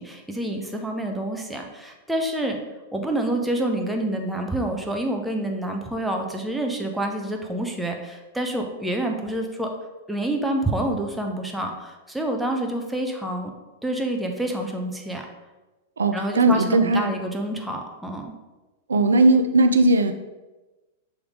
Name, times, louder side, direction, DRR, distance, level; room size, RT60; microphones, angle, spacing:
voice 1, 0.0-2.6 2.9-9.7 10.1-13.5 13.8-15.2 16.1-18.3, right 1 dB, 5° right, 2 dB, 1.0 m, -27 dB
voice 2, 16.0-17.1 18.9-20.1, right 2 dB, 85° right, 8 dB, 0.5 m, -18 dB
6.5 x 3.5 x 4.9 m, 1.1 s
hypercardioid pair, 105°, 0 cm